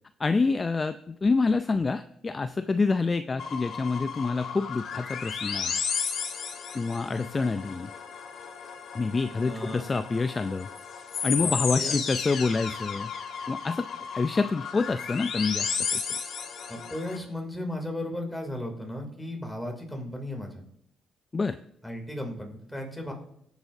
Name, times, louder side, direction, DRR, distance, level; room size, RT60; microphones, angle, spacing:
voice 1, 0.2-5.8 6.7-7.9 8.9-10.7 11.2-13.1 13.5-13.9 14.1-16.0 21.3-21.6, left 4 dB, 30° left, 11 dB, 0.4 m, -27 dB
sound 1, 3.4-17.2, left 6 dB, 65° left, 1.4 m, -34 dB
voice 2, 9.4-9.8 11.4-12.1 16.7-20.6 21.8-23.1, left 1 dB, 5° left, 2 dB, 2.7 m, -36 dB
18.5 x 8.1 x 2.7 m, 0.75 s
cardioid pair, 90°, 0 cm